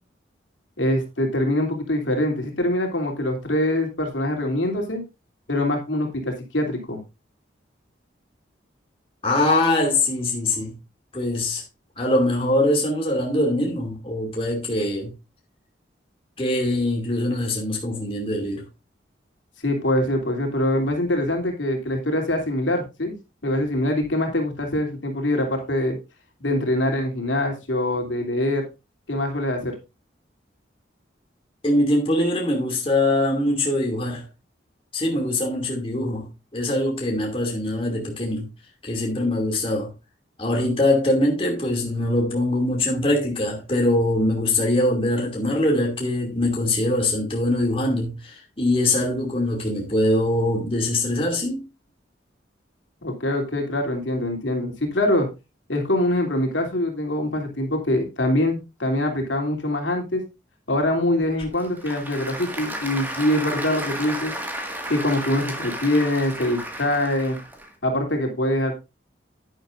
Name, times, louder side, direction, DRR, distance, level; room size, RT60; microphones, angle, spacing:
voice 1, 0.8-5.0 5.5-7.0 19.6-23.1 23.4-26.0 26.4-28.6 29.1-29.7 53.0-55.3 55.7-60.2 60.7-64.3 64.9-67.4 67.8-68.8, left 1 dB, 80° left, 3.0 m, -24 dB
voice 2, 9.2-10.7 11.1-11.6 12.0-15.1 16.4-18.7 31.6-34.2 34.9-38.5 38.8-39.9 40.4-51.6, left 1 dB, 30° left, 2.5 m, -23 dB
Applause / Crowd, 61.2-67.7, right 1 dB, 10° right, 1.8 m, -33 dB
11.0 x 9.9 x 2.6 m
head